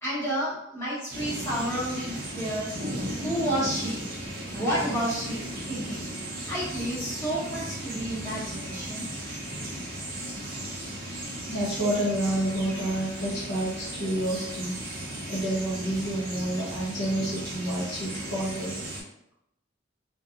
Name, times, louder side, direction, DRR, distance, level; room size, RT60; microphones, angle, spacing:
voice 1, 0.0-2.7 3.2-4.0 4.5-6.0 6.5-9.0, equal, 15° left, -9 dB, 1.0 m, -30 dB
sound 1, 1.1-19.0, right 1 dB, 45° right, 0.6 m, -36 dB
voice 2, 11.5-14.7 15.3-18.7, right 1 dB, 65° left, -9 dB, 1.0 m, -29 dB
2.6 x 2.4 x 2.4 m, 0.78 s
head